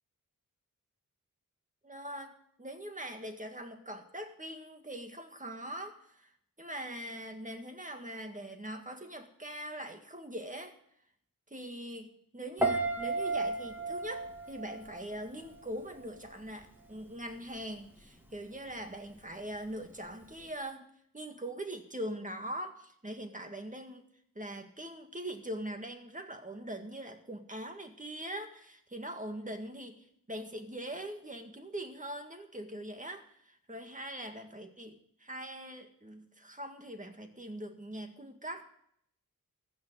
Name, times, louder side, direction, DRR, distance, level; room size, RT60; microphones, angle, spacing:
voice 1, 1.8-6.3 6.6-10.8 11.5-20.9 21.1-24.0 24.4-38.7, right 1 dB, 20° right, 5 dB, 2.0 m, -42 dB
Piano, 12.6-15.7 16.0-16.4, right 2 dB, 5° right, 2.0 m, -33 dB
14.5 x 6.6 x 9.4 m, 0.68 s
wide cardioid pair, 75°, 35 cm